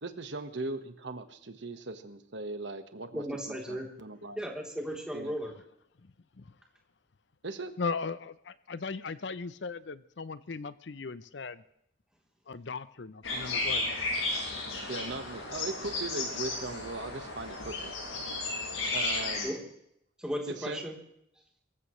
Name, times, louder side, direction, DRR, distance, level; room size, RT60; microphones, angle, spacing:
voice 1, 0.0-4.4 5.1-5.4 7.4-7.7 14.9-18.0 18.9-19.7 20.6-20.8, right 2 dB, 65° right, 8 dB, 1.4 m, -39 dB
voice 2, 3.1-3.9 4.4-5.5 19.4-19.5 20.2-21.0, equal, 5° right, -1 dB, 3.4 m, -35 dB
voice 3, 7.8-11.6 12.5-14.0, left 4 dB, 60° left, 15 dB, 0.6 m, -37 dB
sound 1, 13.2-19.5, left 2 dB, 85° left, 7.8 m, -33 dB
24.5 x 15.0 x 3.2 m, 0.74 s
head